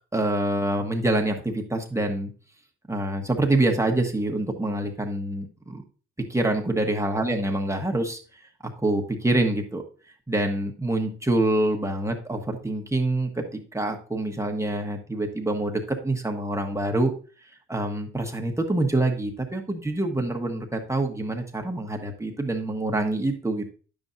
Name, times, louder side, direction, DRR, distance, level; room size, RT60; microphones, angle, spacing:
voice 1, 0.1-2.3 2.9-5.8 6.3-8.2 8.8-9.8 10.3-17.1 17.7-23.7, right 2 dB, 10° right, 2 dB, 1.2 m, -26 dB
9.7 x 7.0 x 2.6 m, 0.38 s
cardioid pair, 90°, 30 cm